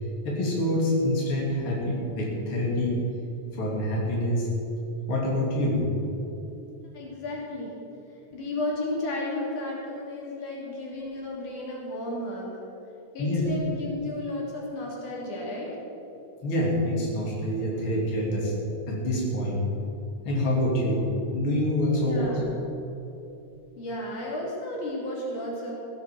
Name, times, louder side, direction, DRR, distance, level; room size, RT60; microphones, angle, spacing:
voice 1, 0.2-3.0 3.5-4.5 5.1-5.8 10.3-10.7 13.2-13.4 16.4-18.5 18.9-19.6 20.2-21.1 21.3-22.4, left 1 dB, 45° left, -4 dB, 3.5 m, -26 dB
voice 2, 6.9-7.7 8.3-12.6 13.1-15.8 22.0-22.5 23.8-25.7, left 1 dB, 80° left, -4 dB, 4.3 m, -33 dB
16.5 x 8.3 x 7.7 m, 2.8 s
omnidirectional pair, 3.5 m